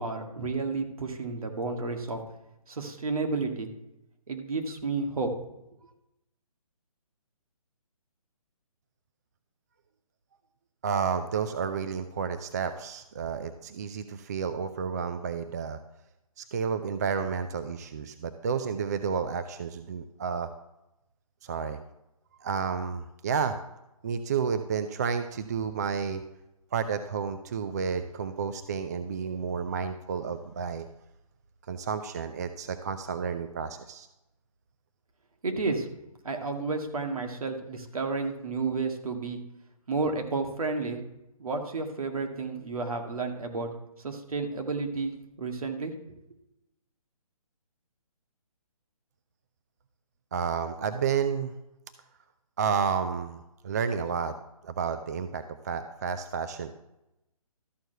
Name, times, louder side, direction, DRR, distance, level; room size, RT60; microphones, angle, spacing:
voice 1, 0.0-2.2 2.7-3.7 4.3-5.3 35.4-35.9 36.2-39.4 39.9-41.0 41.4-43.7 44.0-45.1 45.4-45.9, right 3 dB, 70° right, 4 dB, 2.0 m, -31 dB
voice 2, 10.8-15.8 16.4-20.5 21.4-21.8 22.4-23.6 24.0-26.2 26.7-30.9 31.7-34.1 50.3-51.5 52.6-54.4 54.6-56.7, right 6 dB, 30° right, 10 dB, 0.4 m, -31 dB
13.0 x 4.6 x 6.6 m, 0.90 s
hypercardioid pair, 160°, 19 cm